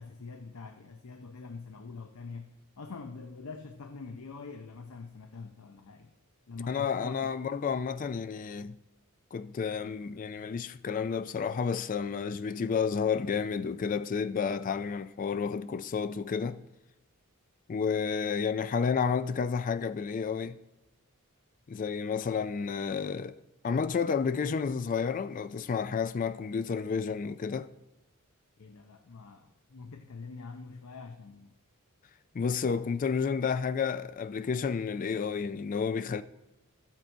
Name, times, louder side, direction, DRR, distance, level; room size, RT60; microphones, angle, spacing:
voice 1, 0.0-6.1 6.5-7.3 28.6-31.5, left 4 dB, 85° left, 0.7 m, -45 dB
voice 2, 6.7-8.8 9.3-16.6 17.7-20.6 21.7-23.4 23.6-27.7 32.3-36.2, left 6 dB, 40° left, 0.3 m, -31 dB
13.0 x 7.4 x 4.5 m
head